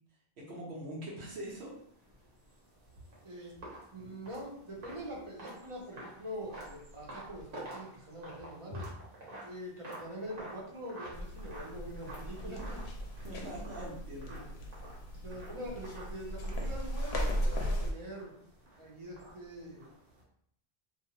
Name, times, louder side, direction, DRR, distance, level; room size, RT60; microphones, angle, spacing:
voice 1, 0.4-1.7 13.2-14.7 15.5-15.7, right 1 dB, 80° right, -4 dB, 1.1 m, -43 dB
sound 1, 1.4-20.2, right 1 dB, 60° right, 1.1 m, -50 dB
voice 2, 3.9-8.9 9.4-12.8 14.3-14.5 15.2-18.3 18.8-19.8, equal, 35° right, -4 dB, 0.7 m, -44 dB
sound 2, 11.1-17.9, equal, 90° left, 0.9 m, -37 dB
2.5 x 2.3 x 2.8 m, 0.69 s
omnidirectional pair, 1.1 m